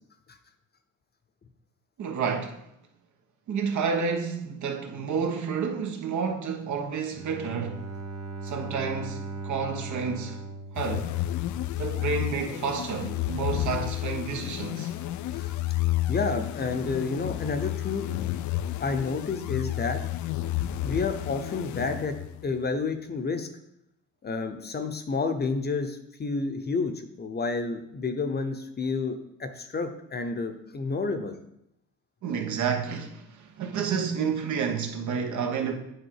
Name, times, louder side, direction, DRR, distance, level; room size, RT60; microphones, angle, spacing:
voice 1, 2.0-2.6 3.5-7.8 8.4-10.4 10.7-11.1 11.8-14.9 32.2-35.7, right 6 dB, 70° right, 1.2 m, -30 dB
Bowed string instrument, 7.1-11.9, right 3 dB, 50° right, 1.0 m, -38 dB
sound 1, 10.8-22.5, left 14 dB, 70° left, 0.4 m, -31 dB
voice 2, 16.1-18.1 18.8-20.0 20.8-22.2 22.4-23.5 24.2-31.4, left 4 dB, 35° left, 0.8 m, -30 dB
8.0 x 3.8 x 4.7 m
cardioid pair, 90°, 30 cm